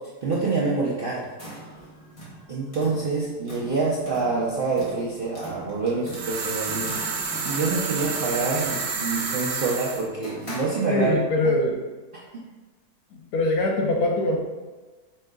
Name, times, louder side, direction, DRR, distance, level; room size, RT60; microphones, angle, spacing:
voice 1, 0.2-1.2 2.5-7.0 7.4-11.1 12.1-12.4, right 4 dB, 55° right, -6 dB, 0.6 m, -26 dB
sound 1, 1.1-11.3, right 1 dB, 25° left, 1.1 m, -41 dB
sound 2, 6.1-10.1, right 5 dB, 80° right, 1.2 m, -29 dB
voice 2, 10.9-11.8 13.1-14.4, left 2 dB, 75° left, 0 dB, 1.2 m, -23 dB
5.3 x 3.7 x 2.3 m, 1.3 s
omnidirectional pair, 1.7 m